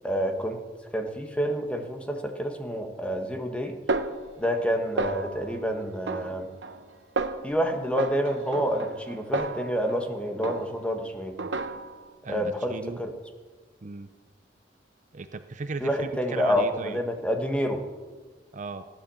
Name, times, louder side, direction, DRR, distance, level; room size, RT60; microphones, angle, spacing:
voice 1, 0.0-0.6 0.9-3.8 4.4-6.5 7.4-11.4 12.3-13.1 15.8-17.8, equal, 5° left, 4 dB, 1.4 m, -28 dB
Snare drum, 3.9-4.7 5.0-5.5 6.1-6.8 7.2-7.5 8.0-10.1 10.4-10.9 11.4-12.1, right 3 dB, 75° right, 0.9 m, -32 dB
voice 2, 12.2-13.0 13.8-14.1 15.1-17.0 18.5-18.9, right 3 dB, 45° right, 10 dB, 0.6 m, -36 dB
16.5 x 10.5 x 7.0 m, 1.4 s
head